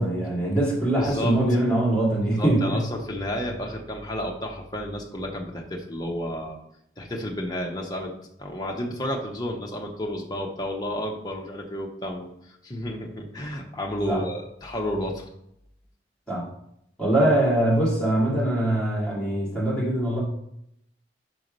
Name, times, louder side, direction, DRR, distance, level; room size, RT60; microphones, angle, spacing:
voice 1, 0.0-2.8 14.1-14.2 16.3-16.5 17.0-20.2, right 1 dB, 5° left, -5 dB, 2.4 m, -23 dB
voice 2, 1.0-1.4 2.4-6.6 7.0-8.1 8.4-15.2, equal, 20° left, 0 dB, 0.9 m, -31 dB
5.3 x 4.6 x 5.2 m, 0.76 s
head